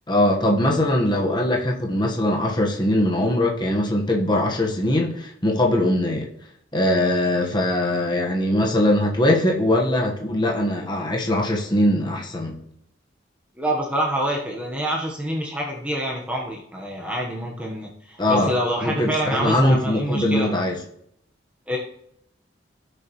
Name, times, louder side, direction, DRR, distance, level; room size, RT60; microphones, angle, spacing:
voice 1, 0.1-6.3 6.7-12.6 18.2-18.5 18.8-20.8, left 1 dB, 25° left, -1 dB, 1.3 m, -21 dB
voice 2, 13.6-20.5 21.7-21.8, right 1 dB, 5° right, -2 dB, 1.2 m, -26 dB
16.0 x 6.9 x 3.1 m, 0.73 s
head